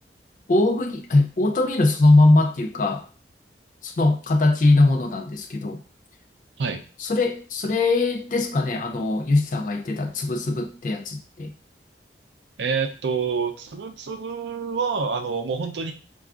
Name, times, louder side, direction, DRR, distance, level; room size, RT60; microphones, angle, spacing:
voice 1, 0.5-3.1 3.8-5.8 7.0-11.5, left 2 dB, 45° left, 0.4 m, -21 dB
voice 2, 12.6-15.9, right 5 dB, 80° right, 0.5 m, -27 dB
4.3 x 2.3 x 2.4 m
head